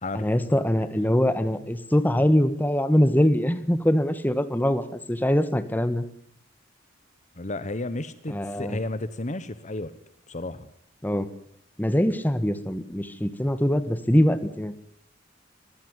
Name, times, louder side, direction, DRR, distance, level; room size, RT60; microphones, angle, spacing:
voice 1, 0.1-6.0 8.3-8.8 11.0-11.3 11.8-14.7, equal, 10° left, 11 dB, 1.5 m, -23 dB
voice 2, 7.4-9.9 10.3-10.7, left 2 dB, 40° left, 13 dB, 1.2 m, -32 dB
23.5 x 16.0 x 9.8 m, 0.69 s
head